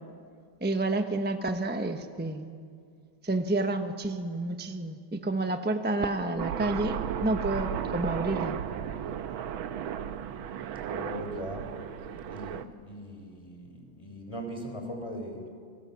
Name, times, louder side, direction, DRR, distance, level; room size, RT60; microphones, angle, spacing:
voice 1, 0.6-2.5 3.2-8.6, right 2 dB, 10° right, 7 dB, 0.5 m, -29 dB
Aircraft, 6.4-12.6, right 8 dB, 80° right, 1.7 m, -34 dB
voice 2, 10.9-11.8 12.3-15.5, equal, 15° left, 3 dB, 4.1 m, -39 dB
29.5 x 23.5 x 7.0 m, 2.3 s
omnidirectional pair, 2.2 m